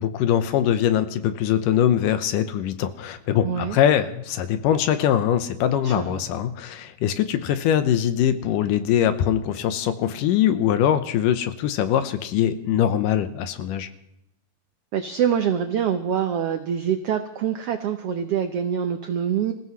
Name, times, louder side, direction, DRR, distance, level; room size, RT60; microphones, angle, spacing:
voice 1, 0.0-13.9, left 10 dB, 85° left, 10 dB, 2.5 m, -22 dB
voice 2, 3.4-3.8 5.8-6.3 14.9-19.5, right 8 dB, 85° right, 7 dB, 1.3 m, -25 dB
26.5 x 15.5 x 3.1 m, 0.80 s
omnidirectional pair, 3.8 m